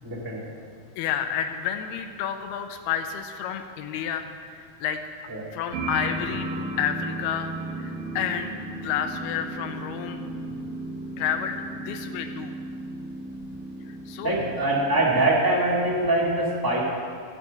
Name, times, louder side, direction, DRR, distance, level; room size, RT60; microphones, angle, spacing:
voice 1, 0.0-0.4 5.3-5.4 14.2-16.8, right 2 dB, 10° right, -6 dB, 1.5 m, -23 dB
voice 2, 1.0-4.3 4.5-5.0 5.5-8.5 8.8-10.3 11.2-12.5 13.9-14.3, left 9 dB, 80° left, 6 dB, 2.7 m, -30 dB
sound 1, 5.7-15.2, right 2 dB, 70° right, 3.6 m, -35 dB
14.5 x 5.9 x 8.0 m, 2.3 s
omnidirectional pair, 4.5 m